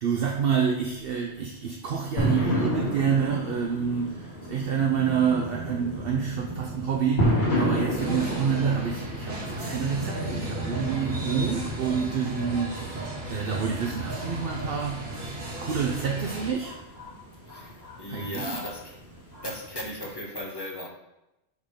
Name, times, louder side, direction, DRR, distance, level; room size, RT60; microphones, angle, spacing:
voice 1, 0.0-16.8 18.1-18.6, right 7 dB, 60° right, 1 dB, 0.7 m, -28 dB
sound 1, 2.2-20.2, equal, 55° left, 2.1 m, -32 dB
sound 2, 8.0-16.5, right 1 dB, 40° right, 1.9 m, -36 dB
voice 2, 17.5-19.0 19.4-20.9, left 1 dB, 20° left, -1 dB, 1.0 m, -36 dB
6.3 x 3.7 x 5.0 m, 0.94 s
omnidirectional pair, 1.2 m